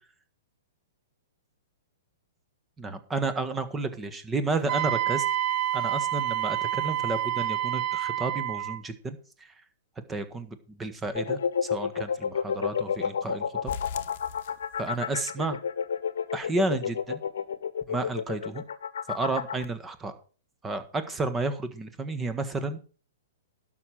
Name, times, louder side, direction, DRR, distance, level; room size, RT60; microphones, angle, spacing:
voice 1, 2.8-5.2 5.7-9.2 10.1-13.7 14.8-15.6 16.3-17.2 17.9-18.6 19.1-20.1 20.6-22.8, right 3 dB, 15° right, 11 dB, 1.5 m, -31 dB
Wind instrument woodwind instrument, 4.7-8.8, right 11 dB, 35° right, 0.6 m, -28 dB
sound 1, 11.2-19.6, left 7 dB, 70° left, 1.1 m, -30 dB
sound 2, 13.7-15.2 15.5-15.6 16.0-16.1 16.5-16.6, left 7 dB, 50° left, 1.0 m, -41 dB
12.0 x 6.0 x 6.5 m, 0.38 s
hypercardioid pair, 120°, 0 cm